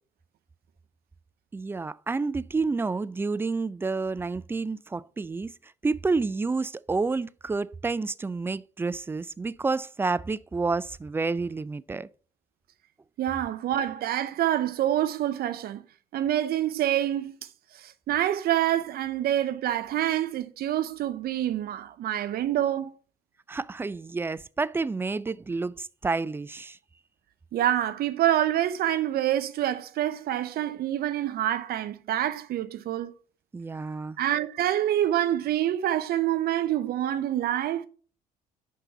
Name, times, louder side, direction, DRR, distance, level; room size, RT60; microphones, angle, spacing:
voice 1, 1.5-5.5 5.8-12.1 23.5-26.8 33.5-34.2, right 4 dB, 10° right, 0.3 m, -29 dB
voice 2, 13.2-15.8 16.1-17.4 17.8-22.9 27.5-33.1 34.2-37.9, right 12 dB, 55° right, 0.7 m, -26 dB
5.6 x 5.4 x 5.6 m
hypercardioid pair, 55°, 18 cm